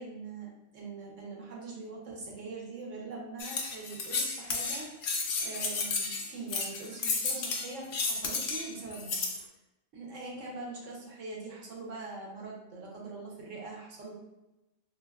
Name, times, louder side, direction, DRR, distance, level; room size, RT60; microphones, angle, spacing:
voice 1, 0.0-5.0 5.4-9.2 9.9-14.1, right 3 dB, 65° right, -3 dB, 1.1 m, -43 dB
Sword slides, 3.4-9.4, left 4 dB, 90° left, 0.4 m, -32 dB
3.4 x 2.7 x 2.3 m, 0.97 s
omnidirectional pair, 1.5 m